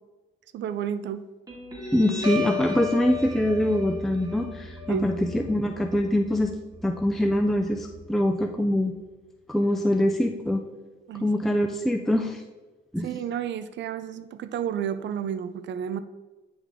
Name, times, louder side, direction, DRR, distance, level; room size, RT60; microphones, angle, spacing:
voice 1, 0.5-1.2 4.9-5.1 11.1-11.3 13.0-16.0, right 9 dB, 65° right, 12 dB, 0.5 m, -31 dB
Guitar, 1.5-8.5, left 4 dB, 20° right, 2.0 m, -35 dB
voice 2, 1.9-6.5 6.8-8.9 9.5-10.6 11.2-12.4 12.9-13.1, left 1 dB, ahead, 4 dB, 0.4 m, -24 dB
10.0 x 3.5 x 3.6 m, 1.2 s
cardioid pair, 90°, 20 cm